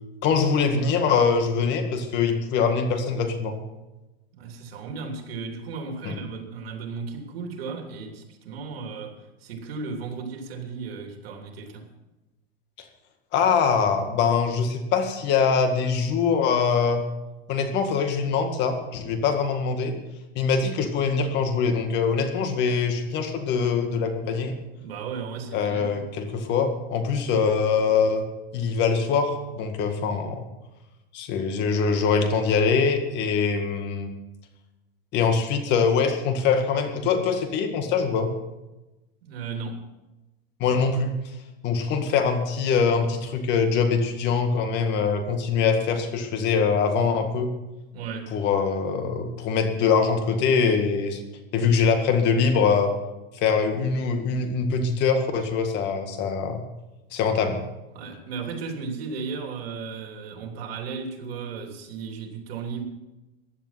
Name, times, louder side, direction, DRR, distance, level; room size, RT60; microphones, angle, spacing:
voice 1, 0.2-3.6 6.1-6.2 13.3-17.0 17.5-20.0 20.4-24.5 25.5-28.2 28.5-30.4 31.1-34.1 35.1-38.3 40.6-41.2 41.6-47.5 48.3-51.2 51.5-52.9 53.3-56.6 57.1-57.6, left 5 dB, 35° left, 6 dB, 1.9 m, -23 dB
voice 2, 4.3-11.9 24.8-26.2 39.2-39.8 47.9-48.3 57.9-62.8, right 5 dB, 85° right, 4 dB, 3.1 m, -35 dB
15.5 x 11.0 x 5.8 m, 1.0 s
supercardioid pair, 150°, 29 cm